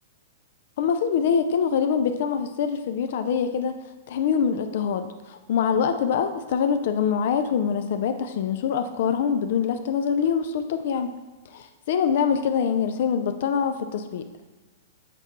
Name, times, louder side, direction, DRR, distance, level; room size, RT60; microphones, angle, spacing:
voice 1, 0.8-3.7 4.1-11.1 11.5-14.2, left 7 dB, 50° left, 8 dB, 0.3 m, -24 dB
7.8 x 4.4 x 3.0 m, 1.2 s
supercardioid pair, 175°, 0 cm